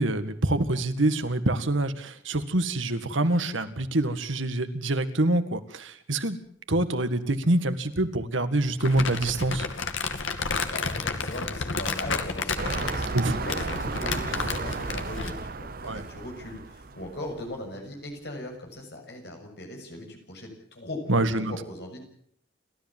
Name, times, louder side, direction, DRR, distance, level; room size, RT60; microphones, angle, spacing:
voice 1, 0.0-6.4 6.7-9.7 13.1-13.4 15.8-16.0 21.1-21.6, right 2 dB, 85° right, 10 dB, 1.9 m, -26 dB
Crumpling crinkling, 8.8-15.4, left 4 dB, 85° left, 2.4 m, -31 dB
voice 2, 10.7-21.0 21.5-22.0, left 1 dB, 55° left, 3 dB, 6.8 m, -39 dB
sound 1, 12.6-17.6 18.2-18.3, right 3 dB, 50° right, 0.8 m, -34 dB
30.0 x 14.0 x 7.5 m, 0.66 s
head